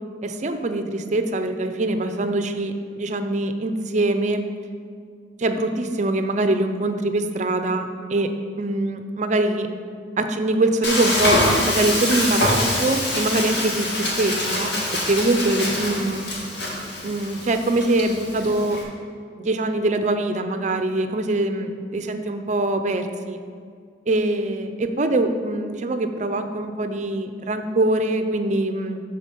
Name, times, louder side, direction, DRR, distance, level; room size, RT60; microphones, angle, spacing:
voice 1, 0.2-4.4 5.4-9.7 10.2-11.4 11.6-16.3 17.0-18.8 19.4-23.4 24.1-29.0, right 2 dB, 40° right, 8 dB, 0.5 m, -23 dB
Frying (food), 10.8-18.8, left 1 dB, 65° left, 1.9 m, -25 dB
11.5 x 4.2 x 5.3 m, 2.2 s
head